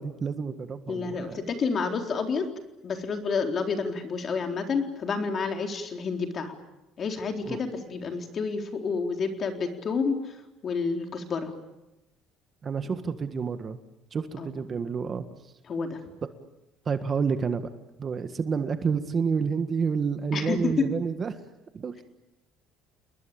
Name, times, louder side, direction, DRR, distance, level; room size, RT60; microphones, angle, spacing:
voice 1, 0.0-1.4 7.5-7.6 12.6-13.8 14.1-15.3 16.9-17.7 18.0-21.4 21.7-22.0, right 5 dB, 30° right, 9 dB, 1.7 m, -29 dB
voice 2, 0.9-2.5 2.8-6.5 7.0-10.4 10.6-11.5 14.4-14.5 15.7-16.0 20.3-20.9, left 5 dB, 35° left, 4 dB, 4.0 m, -29 dB
29.5 x 21.0 x 8.8 m, 0.95 s
cardioid pair, 130°, 0 cm